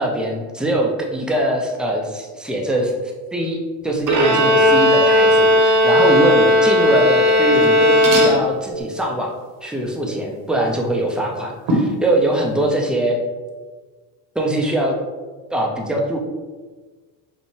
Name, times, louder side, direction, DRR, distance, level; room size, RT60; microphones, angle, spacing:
voice 1, 0.0-3.6 3.8-9.3 9.6-13.2 14.3-15.0 15.5-16.2, right 1 dB, ahead, 0 dB, 0.5 m, -22 dB
Bowed string instrument, 4.1-8.8, left 1 dB, 40° right, 0.9 m, -15 dB
sound 1, 7.4-7.8 8.0-8.4 10.6-10.7 11.7-12.0, right 1 dB, 65° right, 1.2 m, -22 dB
5.5 x 2.1 x 3.1 m, 1.4 s
supercardioid pair, 85°, 49 cm